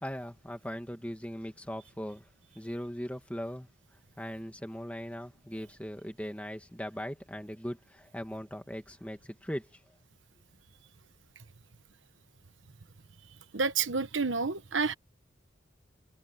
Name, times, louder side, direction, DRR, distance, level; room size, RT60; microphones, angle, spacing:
voice 1, 0.0-2.3 2.5-3.7 4.2-9.7, equal, 5° left, 2.3 m, -39 dB
voice 2, 13.5-14.9, right 4 dB, 80° right, 1.1 m, -29 dB
head